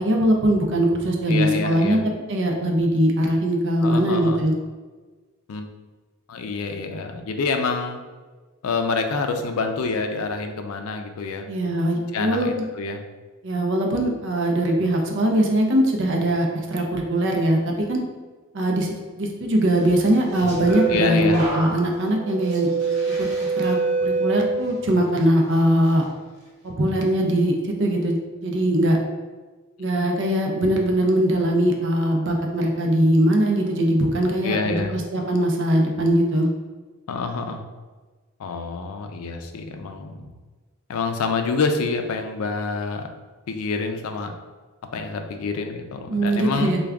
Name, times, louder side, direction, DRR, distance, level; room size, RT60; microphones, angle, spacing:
voice 1, 0.0-2.0 2.3-4.5 11.5-12.5 13.4-18.0 18.5-22.7 23.2-23.3 23.6-26.0 26.6-27.5 27.8-28.2 28.4-29.0 29.8-36.5 46.1-46.8, right 1 dB, 60° right, 2 dB, 0.5 m, -21 dB
voice 2, 1.3-2.0 3.8-4.4 5.5-5.7 6.3-8.0 8.6-11.5 12.1-13.0 20.9-21.4 34.4-35.0 37.1-37.6 38.4-40.3 40.9-43.1 43.5-44.3 44.9-46.8, left 4 dB, 85° left, 6 dB, 0.4 m, -27 dB
sound 1, 20.0-25.1 25.5-25.9, right 4 dB, 35° right, 1.2 m, -26 dB
3.4 x 2.2 x 3.4 m, 1.3 s
head